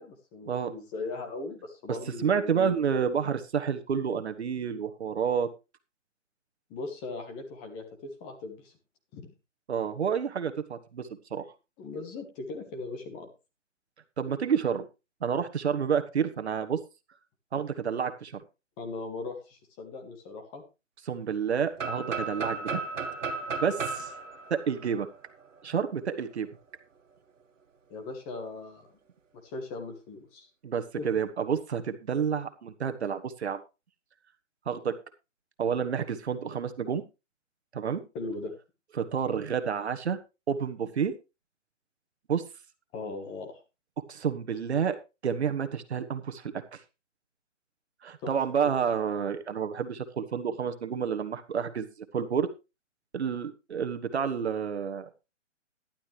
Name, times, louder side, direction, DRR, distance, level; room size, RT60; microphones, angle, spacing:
voice 1, 0.0-3.0 6.7-7.8 8.2-8.7 9.1-9.3 11.8-13.3 18.8-20.6 27.9-28.9 29.4-30.5 31.0-31.1 38.1-38.5 42.9-43.6 48.2-48.4 48.6-48.8, left 3 dB, 15° left, 4 dB, 1.4 m, -39 dB
voice 2, 2.2-5.5 9.7-11.4 14.2-14.9 15.2-16.8 17.5-18.4 21.1-22.8 23.6-24.1 24.5-25.1 25.6-26.5 30.6-33.6 34.7-34.9 35.6-37.0 37.7-38.0 39.0-40.2 40.5-41.1 42.3-42.4 44.1-45.0 45.2-46.8 48.0-52.5 53.1-55.1, right 7 dB, 60° right, 9 dB, 1.4 m, -29 dB
sound 1, 21.8-25.6, right 3 dB, 85° right, 1.8 m, -34 dB
12.5 x 12.0 x 3.3 m, 0.27 s
hypercardioid pair, 160°, 37 cm